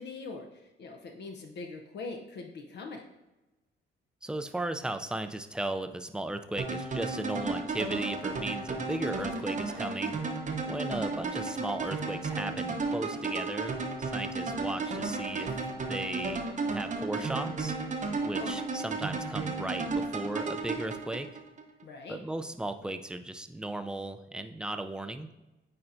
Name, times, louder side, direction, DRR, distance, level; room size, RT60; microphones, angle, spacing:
voice 1, 0.0-3.0 18.2-18.6 21.8-22.2, left 3 dB, 60° left, 3 dB, 0.7 m, -42 dB
voice 2, 4.2-10.2 10.7-15.5 15.9-17.8 18.2-21.3 22.1-25.3, right 1 dB, 5° right, 9 dB, 0.4 m, -36 dB
sound 1, 6.6-21.6, right 3 dB, 40° right, 0.8 m, -33 dB
8.7 x 4.2 x 2.6 m, 1.1 s
cardioid pair, 90°, 20 cm